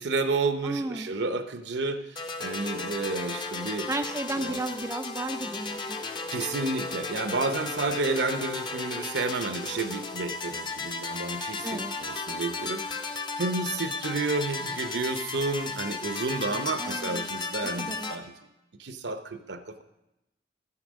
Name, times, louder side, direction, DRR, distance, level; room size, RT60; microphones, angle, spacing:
voice 1, 0.0-3.9 4.4-4.6 6.3-18.3 18.8-19.8, right 3 dB, 70° right, 9 dB, 0.7 m, -31 dB
voice 2, 0.6-1.1 3.9-6.0 11.6-11.9 16.8-17.2 17.8-18.1, right 2 dB, 15° right, 7 dB, 0.4 m, -33 dB
sound 1, 2.2-18.2, left 3 dB, 25° left, 0.6 m, -35 dB
9.8 x 7.3 x 6.3 m, 0.95 s
head